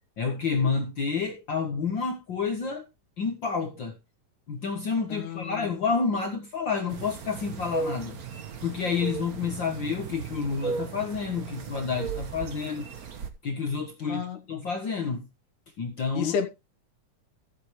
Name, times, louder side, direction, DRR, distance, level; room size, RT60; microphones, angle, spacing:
voice 1, 0.2-2.8 3.2-3.9 4.5-8.2 8.6-12.9 13.4-15.3 15.8-16.3, left 5 dB, 50° left, 1.6 m, -29 dB
voice 2, 5.1-5.7 14.1-14.4 16.1-16.5, left 7 dB, 80° left, 2.8 m, -31 dB
sound 1, 6.9-13.3, right 6 dB, 65° right, 0.9 m, -36 dB
14.5 x 8.3 x 3.1 m
omnidirectional pair, 3.5 m